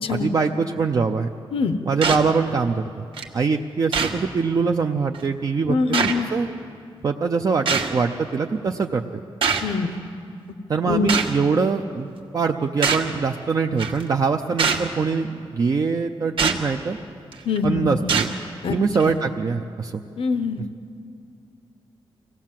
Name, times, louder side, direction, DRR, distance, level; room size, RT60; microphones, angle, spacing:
voice 1, 0.1-1.3 1.9-3.0 3.3-6.5 7.0-9.0 10.7-12.1 12.3-17.0 17.6-18.3 18.7-20.0, right 5 dB, 40° right, 4 dB, 0.6 m, -23 dB
sound 1, 2.0-2.3 3.2-3.3 3.9-4.2 5.1-5.2 5.9-6.1 7.7-7.9 9.4-9.7 11.1-11.3 12.8-13.1 13.8-14.0 14.6-14.9 16.4-16.6 17.3-17.6 18.1-18.3 19.0-19.1, right 5 dB, 70° right, 1.6 m, -22 dB
voice 2, 5.7-6.3 9.6-9.9 10.9-11.1 17.5-18.1 18.6-18.8 20.2-20.6, left 4 dB, 80° left, 9 dB, 0.9 m, -24 dB
25.0 x 17.5 x 7.5 m, 2.5 s
wide cardioid pair, 165°, 9 cm